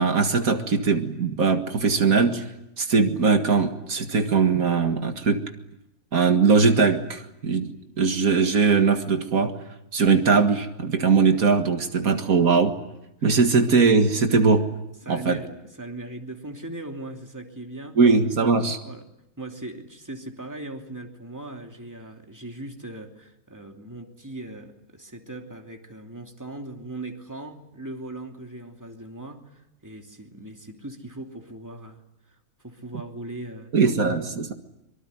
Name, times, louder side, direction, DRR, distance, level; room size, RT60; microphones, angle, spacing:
voice 1, 0.0-2.4 2.8-5.4 6.1-9.5 9.9-12.7 13.2-14.7 15.1-15.4 18.0-18.8 33.7-34.5, right 4 dB, 80° right, 6 dB, 2.2 m, -20 dB
voice 2, 15.0-15.5 15.8-18.0 18.8-19.0 19.4-32.0 32.3-34.1, right 2 dB, 10° right, 2 dB, 2.9 m, -39 dB
24.5 x 24.0 x 9.7 m, 0.87 s
omnidirectional pair, 1.5 m